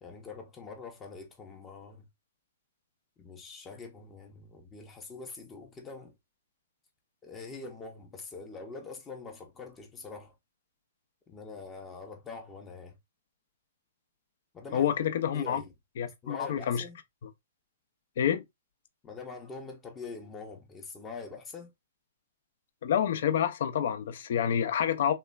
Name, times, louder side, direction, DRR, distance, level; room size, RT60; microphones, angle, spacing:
voice 1, 0.0-2.1 3.2-6.1 7.2-10.3 11.3-13.0 14.5-14.9 15.2-15.7 16.2-17.0 19.0-21.7, left 4 dB, 20° left, 0.6 m, -44 dB
voice 2, 14.7-15.6 16.0-16.8 18.2-18.4 22.8-25.1, left 9 dB, 65° left, 0.5 m, -28 dB
3.0 x 2.2 x 2.2 m
hypercardioid pair, 130°, 0 cm